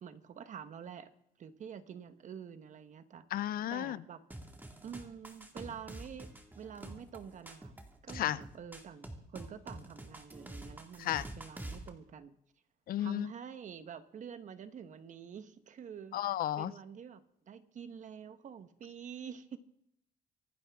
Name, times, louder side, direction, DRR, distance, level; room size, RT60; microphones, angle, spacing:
voice 1, 0.0-1.1 1.4-4.2 4.8-7.8 8.0-12.4 13.0-16.2 16.5-19.6, right 7 dB, 45° right, 10 dB, 1.2 m, -47 dB
voice 2, 3.3-4.0 8.1-8.4 11.0-11.2 12.9-13.3 16.1-16.7, left 12 dB, 60° left, 18 dB, 0.5 m, -33 dB
sound 1, 4.3-11.9, right 1 dB, 10° right, 2.0 m, -47 dB
25.0 x 12.0 x 3.6 m, 0.75 s
cardioid pair, 110°, 17 cm